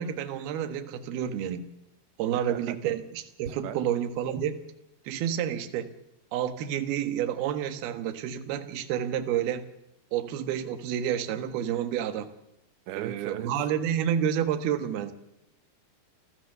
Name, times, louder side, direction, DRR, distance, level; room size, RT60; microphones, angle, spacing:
voice 1, 0.0-1.6 2.2-4.6 5.1-5.9 6.3-9.6 10.1-12.3 13.0-15.1, right 9 dB, 65° right, 10 dB, 3.2 m, -29 dB
voice 2, 2.3-2.8 3.6-3.8 12.9-13.5, right 11 dB, 85° right, 11 dB, 3.4 m, -37 dB
28.0 x 15.5 x 6.8 m, 0.87 s
omnidirectional pair, 5.0 m